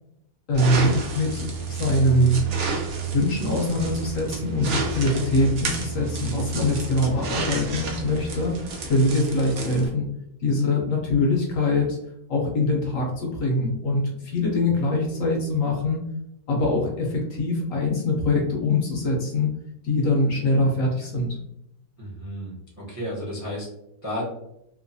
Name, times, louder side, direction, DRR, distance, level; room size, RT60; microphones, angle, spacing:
voice 1, 0.5-2.4 3.1-8.6 8.9-10.1 10.4-12.0 12.3-16.0 16.5-19.5 19.8-21.3, left 1 dB, 70° left, 0 dB, 0.9 m, -23 dB
sound 1, 0.5-9.9, right 3 dB, 65° right, 0.6 m, -30 dB
voice 2, 22.0-23.7 24.0-24.2, equal, 20° right, -6 dB, 0.4 m, -32 dB
3.0 x 2.1 x 2.6 m, 0.80 s
omnidirectional pair, 1.7 m